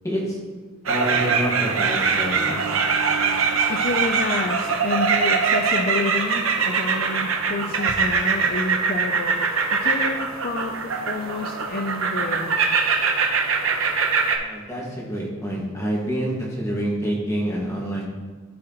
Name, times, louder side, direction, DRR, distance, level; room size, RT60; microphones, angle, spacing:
voice 1, 0.0-0.4 0.9-2.6 14.4-18.1, equal, 15° left, -3 dB, 1.8 m, -27 dB
sound 1, 0.9-14.4, right 5 dB, 85° right, 0.9 m, -22 dB
voice 2, 3.7-9.3 9.7-12.5, left 3 dB, 45° left, 3 dB, 0.5 m, -29 dB
13.5 x 4.8 x 3.0 m, 1.4 s
head